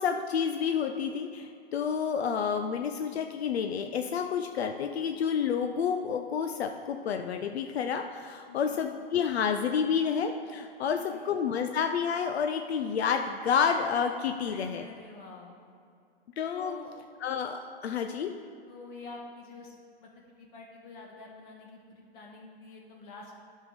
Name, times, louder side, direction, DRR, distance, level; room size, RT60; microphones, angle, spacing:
voice 1, 0.0-14.8 16.4-16.8 17.2-18.3, left 7 dB, 80° left, 6 dB, 0.6 m, -29 dB
voice 2, 8.5-8.9 10.8-11.3 14.4-15.6 16.5-16.9 18.7-19.7 20.0-20.1 20.4-23.4, left 3 dB, 50° left, -1 dB, 1.6 m, -47 dB
9.5 x 5.5 x 5.1 m, 2.4 s
hypercardioid pair, 115°, 31 cm